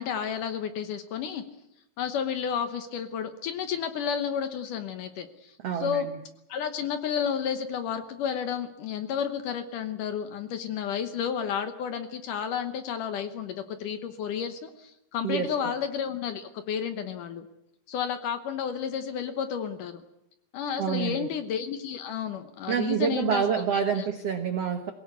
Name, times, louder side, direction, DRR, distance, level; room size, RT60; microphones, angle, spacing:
voice 1, 0.0-1.4 2.0-5.5 5.8-6.1 6.5-17.5 17.9-20.0 20.5-23.4 23.7-24.0, left 8 dB, 65° left, 9 dB, 2.3 m, -31 dB
voice 2, 5.6-6.2 15.2-15.7 20.8-21.3 22.7-24.9, right 7 dB, 85° right, 7 dB, 1.3 m, -28 dB
22.5 x 17.0 x 8.3 m, 0.85 s
omnidirectional pair, 4.7 m